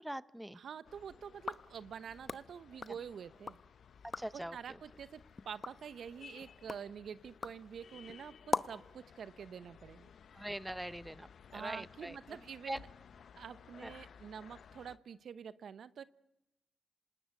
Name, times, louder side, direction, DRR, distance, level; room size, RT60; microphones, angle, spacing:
voice 1, 0.0-0.6 4.2-4.6 10.3-12.2 12.7-12.8 13.8-13.9, right 1 dB, 5° right, 17 dB, 0.9 m, -42 dB
voice 2, 0.5-3.6 4.3-10.1 11.5-12.9 13.4-16.0, right 7 dB, 70° right, 15 dB, 0.8 m, -47 dB
sound 1, 0.8-15.0, left 7 dB, 70° left, 1.0 m, -58 dB
sound 2, 1.3-3.7 4.0-4.5 4.9-8.9, left 4 dB, 45° left, 0.8 m, -43 dB
26.5 x 19.5 x 8.3 m, 0.90 s
cardioid pair, 60°, 0 cm